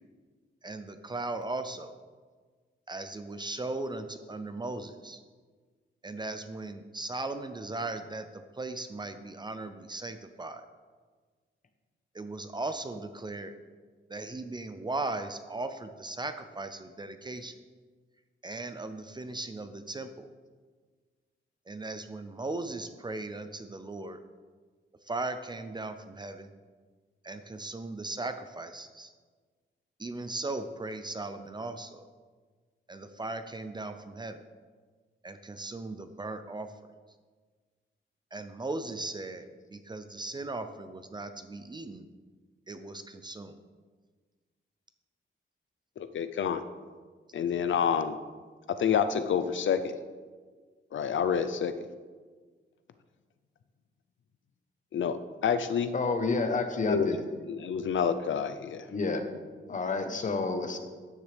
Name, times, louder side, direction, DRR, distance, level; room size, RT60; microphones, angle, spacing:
voice 1, 0.6-1.9 2.9-5.2 6.0-8.3 8.6-10.7 12.1-13.5 14.1-17.5 18.4-20.3 21.7-24.2 25.1-26.5 27.2-29.1 30.0-32.0 32.9-34.4 35.2-36.7 38.3-42.0 42.7-43.6, right 2 dB, 20° right, 9 dB, 0.5 m, -37 dB
voice 2, 46.0-46.6 47.3-48.1 48.8-49.8 50.9-51.7 54.9-55.1 55.4-55.9 56.9-57.1 57.5-58.8, left 7 dB, 70° left, 10 dB, 0.6 m, -28 dB
voice 3, 55.9-57.2 58.9-59.3 59.7-60.8, left 3 dB, 40° left, 7 dB, 1.0 m, -29 dB
13.5 x 9.9 x 3.4 m, 1.5 s
wide cardioid pair, 180°, 21 cm